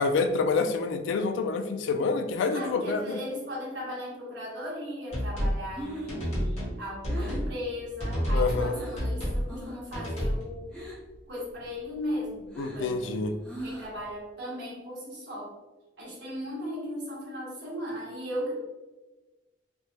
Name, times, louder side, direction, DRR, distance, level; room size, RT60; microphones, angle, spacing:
voice 1, 0.0-3.2 8.3-8.7 12.6-13.3, left 4 dB, 85° left, 9 dB, 0.3 m, -27 dB
voice 2, 2.5-10.8 11.3-12.5 12.7-13.3 13.6-15.5 16.0-18.6, equal, 70° right, -5 dB, 1.1 m, -37 dB
sound 1, 5.1-5.6 6.1-6.8 7.0-7.5 8.0-8.7 9.0-9.4 9.9-10.4, equal, 35° left, 1.1 m, -29 dB
Breathing, 5.7-9.1 9.4-9.9 10.2-11.2 11.5-14.1, right 1 dB, 5° left, 0.7 m, -41 dB
3.1 x 2.1 x 2.8 m, 1.2 s
head